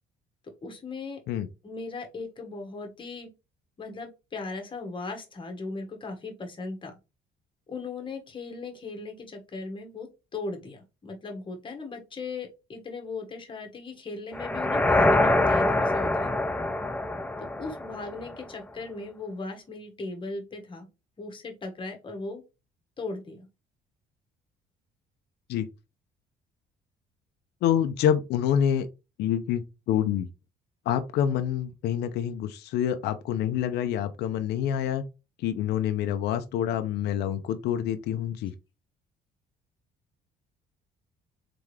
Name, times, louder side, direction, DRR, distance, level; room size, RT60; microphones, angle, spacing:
voice 1, 0.4-1.2 1.6-3.3 3.8-7.0 7.7-16.3 17.4-20.9 21.2-22.4 23.0-23.4, left 3 dB, 30° left, 1.5 m, -38 dB
sound 1, 14.3-18.4, left 2 dB, 10° left, 0.5 m, -24 dB
voice 2, 27.6-28.9 29.2-30.3 30.9-35.0 35.4-38.5, left 9 dB, 80° left, 0.6 m, -27 dB
3.8 x 3.6 x 3.3 m
cardioid pair, 110°, 17 cm